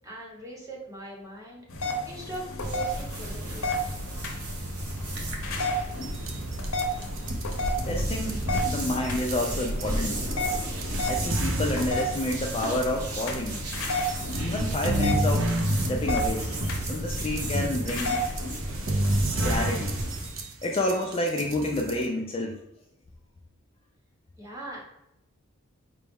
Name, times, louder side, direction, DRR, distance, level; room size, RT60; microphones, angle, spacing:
voice 1, 0.0-1.6 2.0-3.8 24.4-24.8, right 2 dB, 15° right, -3 dB, 0.9 m, -40 dB
sound 1, 1.7-19.2, left 1 dB, 75° left, 0.7 m, -33 dB
sound 2, 2.6-20.4, right 1 dB, 80° right, 0.9 m, -34 dB
sound 3, 5.9-22.1, right 1 dB, 60° right, 0.6 m, -31 dB
voice 2, 7.9-10.2 11.0-13.6 14.4-15.5 15.9-16.5 16.9-18.2 19.4-20.0 20.6-22.5, left 1 dB, 25° left, 0 dB, 0.3 m, -29 dB
4.9 x 2.2 x 3.5 m, 0.86 s
head